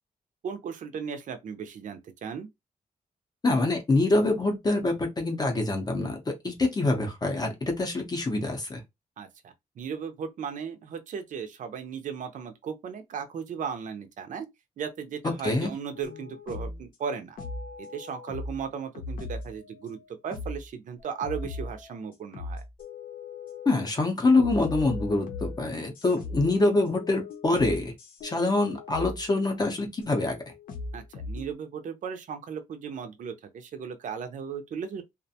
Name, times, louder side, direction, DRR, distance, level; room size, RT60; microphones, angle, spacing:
voice 1, 0.4-2.5 9.2-14.5 14.8-17.4 17.8-20.0 20.2-22.6 30.9-35.0, right 6 dB, 55° right, 0.5 m, -36 dB
voice 2, 3.4-8.8 15.4-15.7 23.7-27.9 28.2-30.4, left 2 dB, 25° left, 0.6 m, -25 dB
sound 1, 16.0-16.8 17.4-18.6 19.0-20.7 21.0-22.0 22.3-23.9 24.4-29.3 30.0-31.5, left 3 dB, 70° left, 0.7 m, -39 dB
2.4 x 2.1 x 2.7 m
wide cardioid pair, 165°, 15 cm